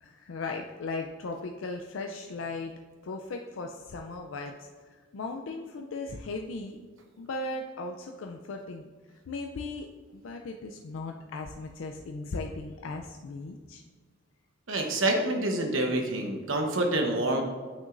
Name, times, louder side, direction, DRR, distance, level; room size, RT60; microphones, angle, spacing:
voice 1, 0.0-2.7 3.0-6.8 7.2-8.9 9.3-9.9 10.1-13.8, left 3 dB, 80° left, 3 dB, 0.4 m, -37 dB
voice 2, 14.7-17.4, right 1 dB, 85° right, 2 dB, 1.0 m, -27 dB
8.8 x 6.0 x 2.5 m, 1.5 s
head